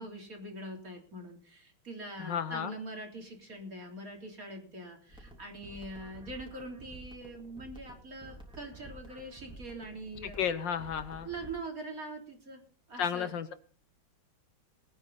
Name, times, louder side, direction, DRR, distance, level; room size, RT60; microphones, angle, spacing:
voice 1, 0.0-10.4 11.2-12.6 12.9-13.3, right 2 dB, 45° right, 2 dB, 3.9 m, -43 dB
voice 2, 2.2-2.7 10.2-11.3 13.0-13.5, left 8 dB, 70° left, 12 dB, 1.6 m, -33 dB
sound 1, 5.1-11.5, right 1 dB, ahead, 3.4 m, -51 dB
20.5 x 9.6 x 4.1 m, 0.41 s
omnidirectional pair, 2.2 m